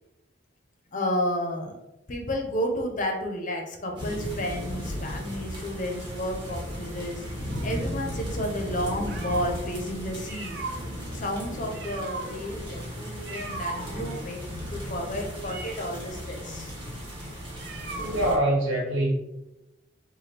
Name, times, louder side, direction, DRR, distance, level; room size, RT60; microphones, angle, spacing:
voice 1, 0.9-1.8 2.1-10.6 11.1-14.4 14.7-16.7, equal, 40° left, 2 dB, 0.6 m, -31 dB
sound 1, 4.0-18.4, equal, 25° right, 1.1 m, -36 dB
sound 2, 7.5-9.6 10.1-18.5, right 3 dB, 55° right, 0.5 m, -39 dB
voice 2, 18.0-19.1, right 1 dB, 80° right, -2 dB, 1.3 m, -24 dB
3.4 x 2.2 x 4.2 m, 0.92 s
head